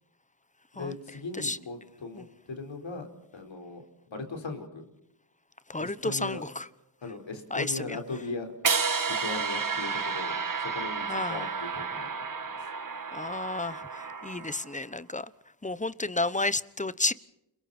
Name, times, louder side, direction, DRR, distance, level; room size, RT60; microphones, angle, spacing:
voice 1, 0.7-3.1 3.3-3.8 4.1-4.9 5.8-6.4 7.0-8.5 9.0-12.1 12.5-12.7, left 3 dB, 75° left, 4.7 m, -38 dB
voice 2, 5.7-6.7 7.5-8.0 11.0-11.4 13.1-15.3 15.6-17.1, left 2 dB, 15° left, 1.0 m, -31 dB
sound 1, 8.6-14.8, right 5 dB, 45° right, 1.7 m, -31 dB
30.0 x 22.5 x 4.4 m
wide cardioid pair, 80°, 46 cm